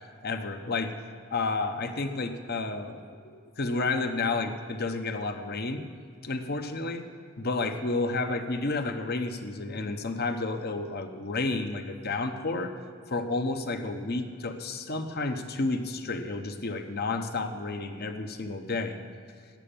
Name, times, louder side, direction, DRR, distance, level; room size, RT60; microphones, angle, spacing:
voice 1, 0.2-1.0 1.3-5.8 6.2-7.0 7.4-12.7 13.1-19.0, left 3 dB, 50° left, 7 dB, 0.9 m, -31 dB
12.0 x 8.9 x 8.8 m, 2.1 s
head